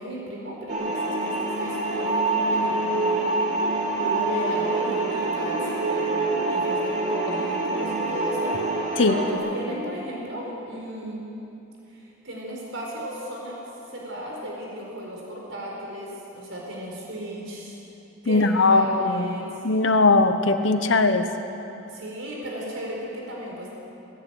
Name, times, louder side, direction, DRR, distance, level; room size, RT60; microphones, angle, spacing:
voice 1, 0.0-3.3 4.0-8.6 9.0-11.3 11.9-13.6 13.9-17.7 18.2-19.6 20.8-20.9 21.9-23.7, equal, 75° right, -2 dB, 4.6 m, -35 dB
sound 1, 0.7-9.3, right 2 dB, 35° right, 2.7 m, -26 dB
voice 2, 18.3-19.3 19.6-21.3, left 3 dB, 70° left, 8 dB, 1.1 m, -19 dB
19.5 x 16.5 x 9.0 m, 2.9 s
head